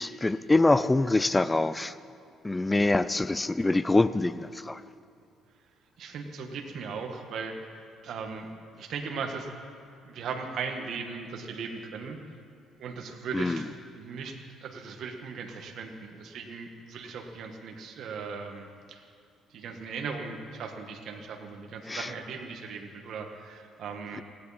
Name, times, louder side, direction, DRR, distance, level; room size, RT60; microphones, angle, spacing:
voice 1, 0.0-1.9 2.4-4.8 13.3-13.6 21.9-22.1, left 2 dB, 15° left, 14 dB, 0.4 m, -25 dB
voice 2, 6.0-7.6 8.0-8.5 8.8-9.5 10.0-12.2 12.8-19.0 19.5-24.2, right 5 dB, 60° right, 3 dB, 1.6 m, -38 dB
17.5 x 17.0 x 4.3 m, 2.4 s
cardioid pair, 130°, 0 cm